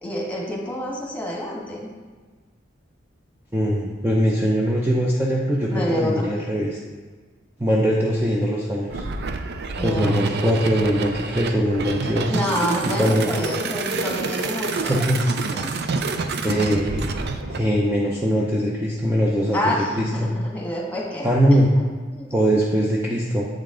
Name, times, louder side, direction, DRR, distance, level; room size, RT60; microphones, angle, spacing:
voice 1, 0.0-1.9 5.7-6.3 9.8-10.2 12.3-15.0 15.6-15.7 19.5-21.2 21.5-21.7 22.1-22.3, left 1 dB, 10° left, -3 dB, 1.5 m, -27 dB
voice 2, 3.5-6.8 7.6-9.0 9.8-12.3 13.0-13.3 14.9-15.3 16.4-17.1 17.5-20.3 21.2-21.7 22.3-23.5, equal, 10° right, -4 dB, 0.6 m, -21 dB
sound 1, 8.9-17.6, right 4 dB, 60° right, 0.5 m, -28 dB
7.7 x 5.2 x 3.8 m, 1.4 s
head